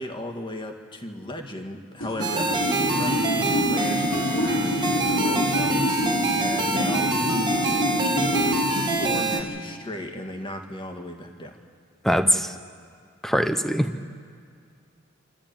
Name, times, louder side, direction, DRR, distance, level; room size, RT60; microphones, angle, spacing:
voice 1, 0.0-5.9 6.4-11.6, equal, 25° left, 4 dB, 1.8 m, -35 dB
sound 1, 2.0-9.5, left 1 dB, 70° left, 4.5 m, -26 dB
sound 2, 2.2-9.4, right 3 dB, 25° right, 1.5 m, -26 dB
voice 2, 12.0-12.5 13.2-14.1, equal, ahead, 8 dB, 0.9 m, -22 dB
27.0 x 13.0 x 9.0 m, 2.2 s
head